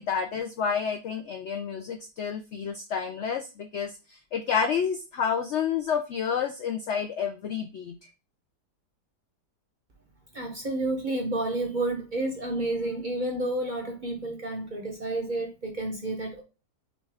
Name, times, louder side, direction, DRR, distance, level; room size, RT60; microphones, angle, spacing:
voice 1, 0.0-8.1, left 7 dB, 90° left, 6 dB, 0.6 m, -29 dB
voice 2, 10.3-16.4, right 2 dB, 50° right, 2 dB, 0.6 m, -30 dB
6.2 x 2.4 x 3.3 m, 0.31 s
omnidirectional pair, 1.8 m